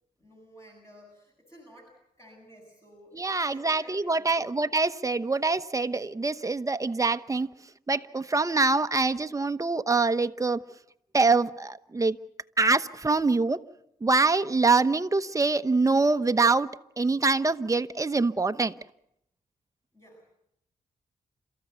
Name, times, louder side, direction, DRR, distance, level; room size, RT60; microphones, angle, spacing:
voice 1, 0.2-4.6 19.9-20.3, equal, 20° left, 0 dB, 7.7 m, -53 dB
voice 2, 3.1-7.5 7.9-10.6 11.1-12.2 12.6-13.6 14.0-16.7 17.0-18.7, right 3 dB, 20° right, 10 dB, 1.0 m, -24 dB
29.0 x 14.5 x 8.0 m, 0.78 s
cardioid pair, 75°, 15 cm